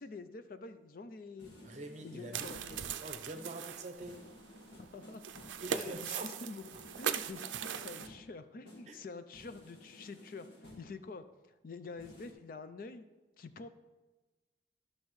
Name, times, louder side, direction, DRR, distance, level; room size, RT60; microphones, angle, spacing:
voice 1, 0.0-1.5 2.0-3.0 4.8-5.2 5.7-6.7 7.0-10.5 10.8-11.2 11.6-13.0 13.4-13.7, left 4 dB, 50° left, 10 dB, 0.4 m, -47 dB
sound 1, 1.4-3.0 3.3-3.7 4.0-5.7 6.7-8.4 8.6-9.0 9.3-11.0 12.0-12.3, left 1 dB, 70° left, 1.6 m, -55 dB
voice 2, 1.6-4.1 5.6-6.3 8.9-9.0, right 2 dB, 40° right, 5 dB, 0.7 m, -45 dB
sound 2, 2.3-8.1, right 8 dB, 85° right, 0.4 m, -40 dB
11.0 x 6.3 x 3.1 m, 1.2 s
head